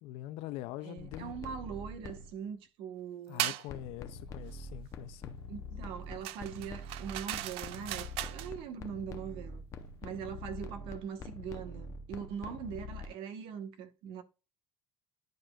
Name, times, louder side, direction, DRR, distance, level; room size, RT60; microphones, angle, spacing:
voice 1, 0.0-1.3 3.3-5.4, left 15 dB, 80° left, 0.5 m, -43 dB
voice 2, 0.8-3.5 5.5-9.6 10.0-14.2, right 7 dB, 65° right, 1.1 m, -42 dB
sound 1, 1.0-2.4 3.7-13.1, left 2 dB, 35° left, 0.7 m, -45 dB
sound 2, 3.4-3.7 6.2-8.5, right 14 dB, 80° right, 0.5 m, -37 dB
10.5 x 5.0 x 2.3 m
cardioid pair, 180°, 10 cm